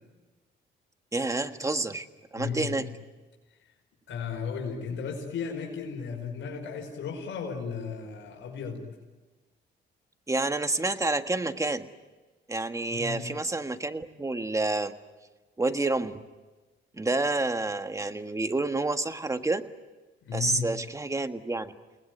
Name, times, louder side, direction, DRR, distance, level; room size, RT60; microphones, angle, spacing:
voice 1, 1.1-2.1 2.3-2.9 10.3-11.9 12.5-14.9 15.6-16.2 16.9-19.7 20.3-21.7, right 2 dB, 15° right, 8 dB, 1.6 m, -29 dB
voice 2, 2.3-2.8 4.1-9.0 12.9-13.2 20.2-20.7, left 6 dB, 75° left, 1 dB, 5.2 m, -35 dB
29.5 x 20.0 x 9.4 m, 1.2 s
cardioid pair, 90°, 20 cm